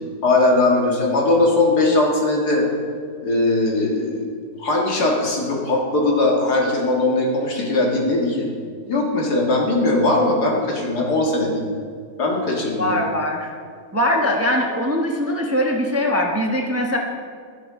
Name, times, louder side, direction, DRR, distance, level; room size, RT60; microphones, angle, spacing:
voice 1, 0.2-2.7 3.2-4.2 4.6-8.5 8.8-11.7 12.2-13.0, left 2 dB, 80° left, -1 dB, 2.4 m, -19 dB
voice 2, 12.8-13.5 13.9-17.0, left 1 dB, 15° right, 1 dB, 0.7 m, -21 dB
12.0 x 11.5 x 3.7 m, 2.1 s
omnidirectional pair, 1.7 m